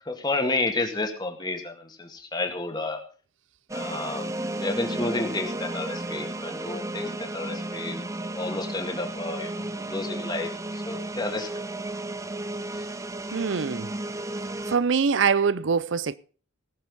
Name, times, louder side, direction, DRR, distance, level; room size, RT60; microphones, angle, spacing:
voice 1, 0.1-3.0 3.7-8.0 8.4-11.5 12.7-12.9, left 2 dB, 20° left, 2.0 m, -31 dB
sound 1, 3.7-14.8, right 1 dB, 15° right, 0.6 m, -33 dB
voice 2, 13.3-13.9 14.7-16.2, right 5 dB, 65° right, 0.5 m, -23 dB
18.5 x 7.0 x 5.5 m
head